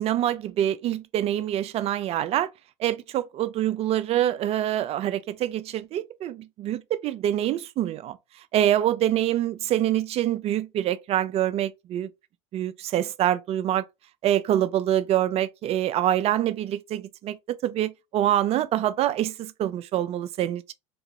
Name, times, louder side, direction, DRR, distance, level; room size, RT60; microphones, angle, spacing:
voice 1, 0.0-2.5 2.8-8.2 8.5-12.1 12.5-13.9 14.2-20.7, right 12 dB, 40° right, 0.4 m, -25 dB
2.8 x 2.4 x 2.2 m
hypercardioid pair, 80°, 17 cm